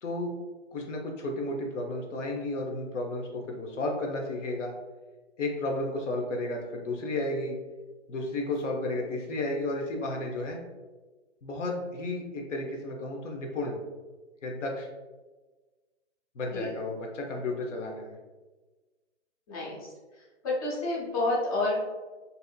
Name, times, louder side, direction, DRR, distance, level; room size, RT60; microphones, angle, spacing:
voice 1, 0.0-0.3 0.7-4.7 5.4-7.5 8.1-10.6 11.4-13.8 14.4-14.9 16.3-18.2, left 2 dB, 85° left, 1 dB, 0.7 m, -33 dB
voice 2, 19.5-19.9 20.2-21.8, left 2 dB, 30° left, -5 dB, 0.7 m, -29 dB
2.7 x 2.5 x 2.3 m, 1.3 s
hypercardioid pair, 155°, 36 cm